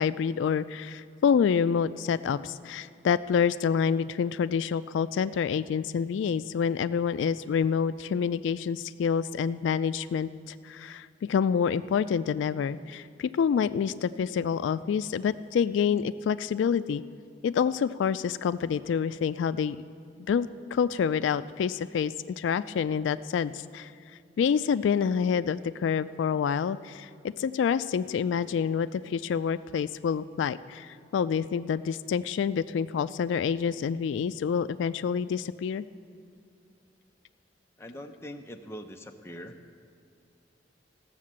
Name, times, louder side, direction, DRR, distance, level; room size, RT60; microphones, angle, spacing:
voice 1, 0.0-17.0 17.4-19.8 20.3-23.9 24.4-35.8, left 7 dB, 85° left, 14 dB, 0.3 m, -27 dB
voice 2, 37.8-39.6, equal, 15° left, 4 dB, 0.6 m, -42 dB
15.5 x 6.6 x 7.4 m, 2.4 s
head